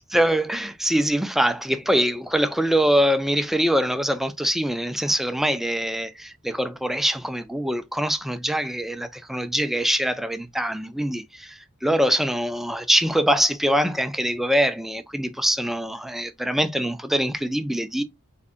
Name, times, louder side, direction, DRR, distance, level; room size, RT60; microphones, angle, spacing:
voice 1, 0.1-18.0, equal, ahead, 0.4 m, -23 dB
4.4 x 2.5 x 2.5 m
head